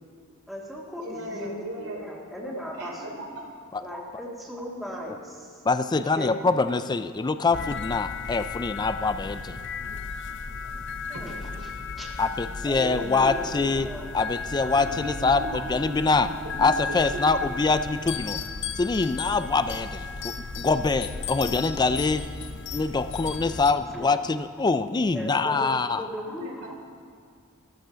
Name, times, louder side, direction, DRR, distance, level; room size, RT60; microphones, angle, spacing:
voice 1, 0.5-3.0 3.8-5.6 6.2-6.4 11.1-11.7 12.0-12.1 12.6-14.0 22.0-22.1 23.2-23.4 23.9-24.1 25.1-26.7, equal, ahead, -4 dB, 1.8 m, -37 dB
voice 2, 1.0-2.2 2.7-3.4 11.6-11.7 12.7-13.7 14.6-17.2 26.4-26.7, right 1 dB, 85° right, -1 dB, 3.2 m, -38 dB
voice 3, 5.7-9.5 12.2-13.9 14.1-16.3 16.6-18.4 18.8-22.2 22.7-26.1, left 3 dB, 20° left, 11 dB, 0.4 m, -24 dB
sound 1, 7.5-23.7, left 4 dB, 60° left, 0.7 m, -35 dB
14.0 x 13.5 x 5.1 m, 2.2 s
head